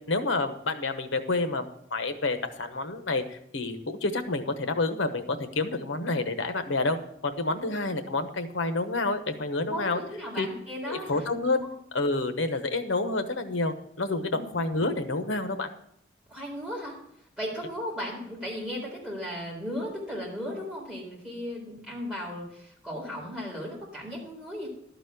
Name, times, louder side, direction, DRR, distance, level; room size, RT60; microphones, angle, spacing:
voice 1, 0.1-1.7 1.9-7.0 7.2-10.0 10.4-10.5 10.9-11.7 11.9-15.7, left 2 dB, 85° left, 9 dB, 1.0 m, -28 dB
voice 2, 7.5-7.9 9.7-11.2 14.2-14.4 16.3-17.0 17.4-24.7, equal, 5° right, -5 dB, 3.8 m, -36 dB
12.0 x 4.1 x 8.1 m, 0.73 s
head